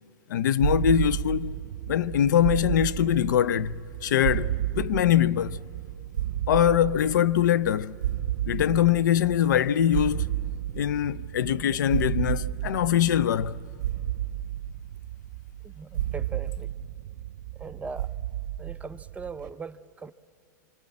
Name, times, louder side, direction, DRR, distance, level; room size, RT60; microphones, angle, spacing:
voice 1, 0.3-1.6 1.9-5.6 6.5-8.0 8.4-10.3 10.8-13.6, left 10 dB, 80° left, 0.5 m, -23 dB
sound 1, 0.6-19.5, right 12 dB, 75° right, 0.7 m, -32 dB
voice 2, 15.6-16.7 17.5-18.1 18.6-20.1, right 5 dB, 15° right, 0.6 m, -40 dB
25.5 x 25.0 x 8.6 m
hypercardioid pair, 120°, 10 cm